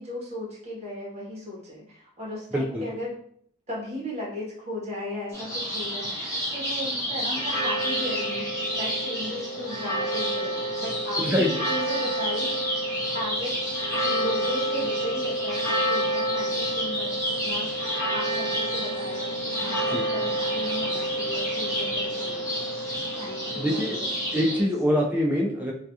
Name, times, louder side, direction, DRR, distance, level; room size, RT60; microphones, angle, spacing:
voice 1, 0.0-3.1 3.7-13.6 14.0-24.7, left 1 dB, 30° right, -5 dB, 0.9 m, -36 dB
voice 2, 2.5-2.9 11.2-11.5 19.9-20.0 23.6-24.0 24.3-25.7, equal, 5° right, -2 dB, 0.4 m, -24 dB
sound 1, 5.3-24.6, right 1 dB, 15° left, 0.9 m, -28 dB
2.3 x 2.3 x 2.7 m, 0.62 s
head